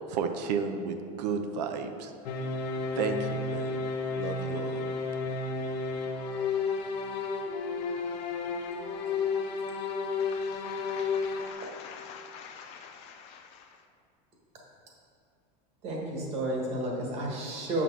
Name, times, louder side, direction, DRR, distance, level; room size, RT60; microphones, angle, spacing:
voice 1, 0.1-2.1 2.9-3.7 4.2-4.8, right 6 dB, 85° right, 0.7 m, -32 dB
sound 1, 2.3-11.5, left 4 dB, 85° left, 0.8 m, -32 dB
voice 2, 10.2-13.7, left 7 dB, 30° left, 0.4 m, -46 dB
voice 3, 15.8-17.8, right 1 dB, 30° right, 1.5 m, -31 dB
7.7 x 6.2 x 4.6 m
supercardioid pair, 175°, 21 cm